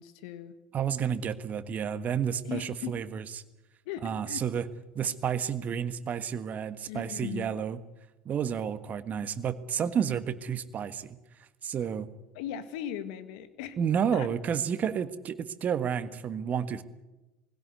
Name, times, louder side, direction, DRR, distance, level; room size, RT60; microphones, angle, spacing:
voice 1, 0.0-0.5 2.4-3.0 3.9-4.4 6.9-7.5 12.3-13.8 14.1-14.3, left 10 dB, 65° left, 11 dB, 1.8 m, -38 dB
voice 2, 0.7-3.4 4.0-4.7 4.9-7.8 8.2-11.2 11.6-12.1 13.8-16.8, right 8 dB, 40° right, 13 dB, 1.5 m, -31 dB
21.0 x 16.5 x 9.5 m, 1.0 s
hypercardioid pair, 75°, 4 cm